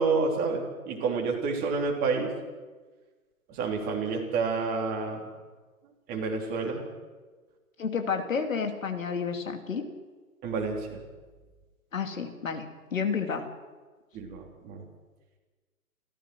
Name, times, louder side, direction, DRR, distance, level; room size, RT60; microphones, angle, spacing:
voice 1, 0.0-2.3 3.5-5.2 6.1-6.8 10.4-11.0 14.1-14.8, right 4 dB, 20° right, 1 dB, 3.3 m, -29 dB
voice 2, 7.8-9.9 11.9-12.7 12.9-13.5, left 6 dB, 60° left, 5 dB, 2.8 m, -30 dB
29.0 x 14.5 x 6.3 m, 1.3 s
figure-of-eight pair, 130°, 44 cm